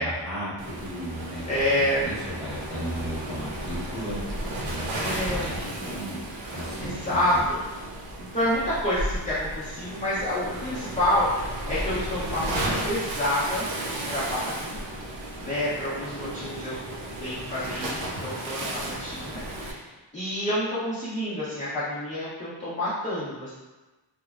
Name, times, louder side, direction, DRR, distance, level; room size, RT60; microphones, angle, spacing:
voice 1, 0.0-6.3 6.5-7.5, equal, ahead, -11 dB, 0.9 m, -35 dB
Waves surf, 0.6-19.7, right 1 dB, 80° right, 0.6 m, -34 dB
voice 2, 1.5-2.1 4.9-5.5 6.8-7.6 8.2-14.8 15.4-16.8 17.2-19.8 20.1-23.5, left 1 dB, 15° left, -11 dB, 0.5 m, -28 dB
2.9 x 2.0 x 2.3 m, 1.2 s
wide cardioid pair, 130°, 45 cm